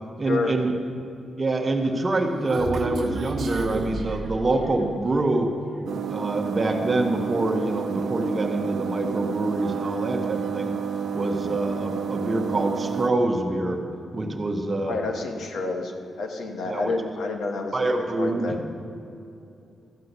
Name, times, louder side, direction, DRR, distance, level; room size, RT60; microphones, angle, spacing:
voice 1, 0.2-0.7 1.4-5.5 6.1-10.8 11.1-13.8 14.1-15.0 16.6-16.9 17.7-18.6, right 2 dB, 25° right, 3 dB, 1.0 m, -25 dB
Human voice, 1.9-4.9, right 2 dB, 55° right, 1.1 m, -32 dB
sound 1, 5.9-13.1, right 7 dB, 70° right, 0.8 m, -30 dB
voice 2, 14.9-15.9 16.2-18.6, left 3 dB, 80° left, 4 dB, 1.2 m, -29 dB
14.0 x 5.7 x 8.1 m, 2.6 s
wide cardioid pair, 145°, 0 cm